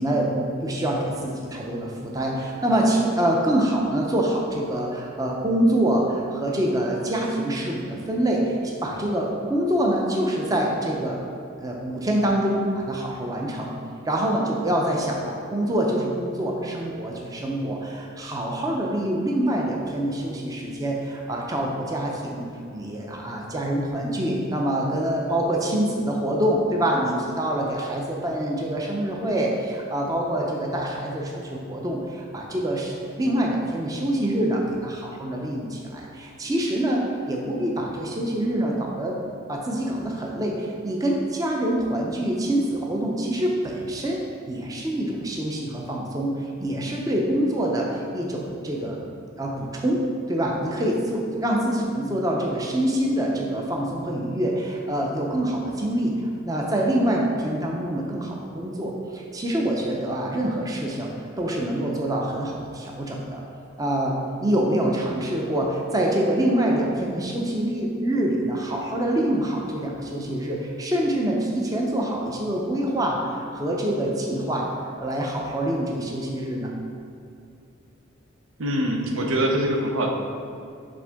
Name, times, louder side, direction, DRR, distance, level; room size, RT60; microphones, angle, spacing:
voice 1, 0.0-11.2 11.6-13.8 14.1-39.2 39.5-49.0 49.4-56.2 56.4-61.1 61.4-63.4 63.8-74.7 75.0-76.7, right 1 dB, 15° right, -1 dB, 0.5 m, -25 dB
voice 2, 78.6-80.1, right 1 dB, 85° right, 2 dB, 0.7 m, -23 dB
7.6 x 3.6 x 3.5 m, 2.6 s
head